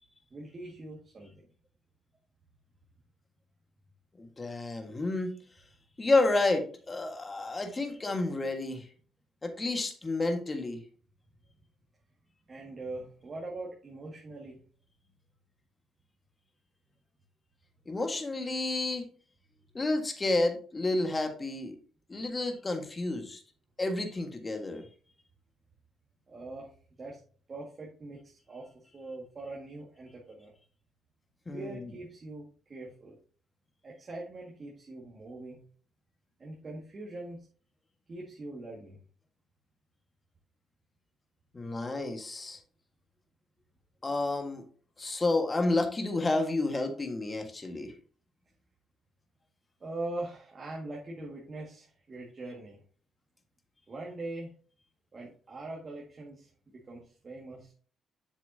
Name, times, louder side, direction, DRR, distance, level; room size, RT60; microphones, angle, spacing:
voice 1, 0.3-1.3 12.5-14.6 26.3-27.2 27.5-30.5 31.5-33.2 33.8-35.7 36.4-37.5 38.1-39.0 49.8-52.8 53.9-54.5 55.1-57.7, right 2 dB, 35° right, -2 dB, 1.9 m, -42 dB
voice 2, 4.2-5.4 6.0-8.9 9.4-10.8 17.9-19.0 19.7-21.7 22.1-23.4 23.8-24.8 31.5-31.8 41.5-42.6 44.0-44.6 45.0-47.9, left 2 dB, 25° left, 5 dB, 1.6 m, -30 dB
7.3 x 7.1 x 2.8 m, 0.43 s
cardioid pair, 90°, 0 cm